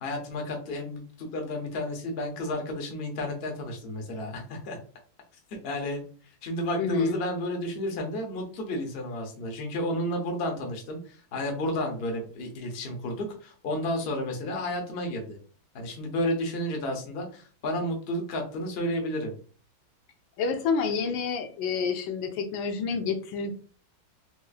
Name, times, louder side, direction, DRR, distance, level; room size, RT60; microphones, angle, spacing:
voice 1, 0.0-4.8 5.5-6.0 6.4-15.4 15.7-19.3, left 1 dB, 60° left, 2 dB, 0.6 m, -32 dB
voice 2, 6.8-7.2 20.4-23.5, left 5 dB, 85° left, 6 dB, 1.4 m, -28 dB
4.2 x 2.4 x 2.3 m, 0.41 s
omnidirectional pair, 2.1 m